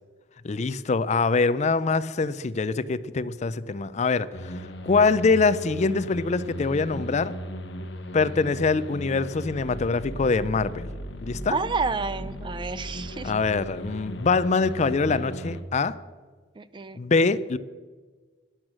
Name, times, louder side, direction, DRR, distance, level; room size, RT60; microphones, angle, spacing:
voice 1, 0.4-4.5 4.8-7.3 8.1-10.9 11.2-11.6 13.2-15.9 16.9-17.6, left 4 dB, 40° left, 16 dB, 0.4 m, -24 dB
sound 1, 4.3-15.6, equal, 70° left, 1.0 m, -37 dB
voice 2, 11.5-13.3 16.6-17.0, right 4 dB, 25° right, 15 dB, 0.4 m, -29 dB
12.5 x 10.5 x 6.2 m, 1.4 s
head